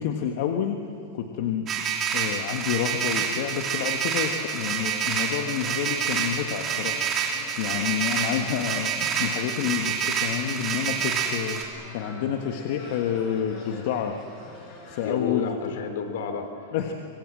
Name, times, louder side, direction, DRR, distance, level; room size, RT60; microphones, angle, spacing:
voice 1, 0.0-1.8 2.1-7.2 7.6-11.6 11.9-14.2 14.5-15.5 16.7-16.9, left 8 dB, 55° left, 4 dB, 1.5 m, -29 dB
sound 1, 1.7-11.6, right 7 dB, 25° right, 2.8 m, -28 dB
sound 2, 3.1-15.1, left 2 dB, 35° left, 6.8 m, -46 dB
voice 2, 15.0-16.9, left 6 dB, 70° left, 7 dB, 3.3 m, -31 dB
25.0 x 22.0 x 7.8 m, 2.5 s
supercardioid pair, 155°, 0 cm